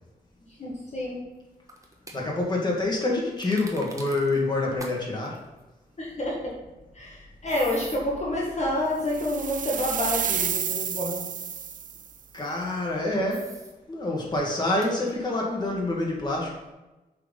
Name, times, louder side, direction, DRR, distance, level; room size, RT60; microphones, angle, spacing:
voice 1, 0.5-1.2 6.0-6.6 6.9-11.3, left 1 dB, 45° left, -4 dB, 1.8 m, -29 dB
sound 1, 1.7-2.2 3.4-4.4 4.8-4.9 5.2-5.4 7.5-8.0 10.2-10.6 11.4-11.7 13.3-13.7 14.2-14.3 14.8-14.9, right 2 dB, 20° right, 1.1 m, -43 dB
voice 2, 2.1-5.4 12.3-13.5 13.9-16.6, left 2 dB, 25° left, -2 dB, 2.0 m, -27 dB
sound 2, 9.1-12.1, right 8 dB, 55° right, 0.4 m, -30 dB
7.9 x 4.6 x 5.5 m, 1.0 s
wide cardioid pair, 120°, 17 cm